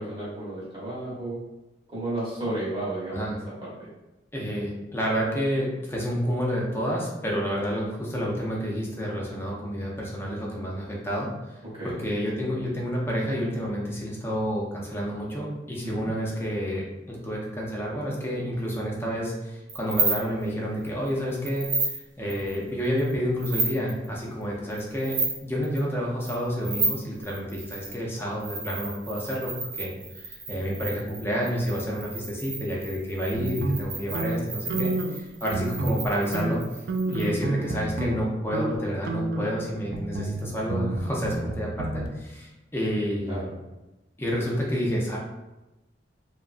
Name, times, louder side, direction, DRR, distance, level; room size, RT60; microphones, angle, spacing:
voice 1, 0.0-1.4 1.9-3.3 3.6-3.9 11.7-12.0 15.8-16.1 37.1-37.4 43.3-43.4, right 1 dB, 30° right, -8 dB, 0.9 m, -33 dB
voice 2, 4.3-11.6 11.8-36.6 37.1-43.5 44.2-45.2, equal, 15° left, -3 dB, 0.5 m, -29 dB
sound 1, 19.7-20.4 20.8-21.1 21.4-22.0 22.3-23.1 23.4-24.1 24.7-25.4 25.6-25.8 26.2-28.0 28.4-37.3, right 3 dB, 80° right, 0.7 m, -32 dB
sound 2, 33.3-35.2 35.5-36.1 36.3-38.2 38.5-38.8 39.1-42.1, right 2 dB, 60° right, 0.3 m, -30 dB
2.8 x 2.3 x 2.4 m, 1.0 s
head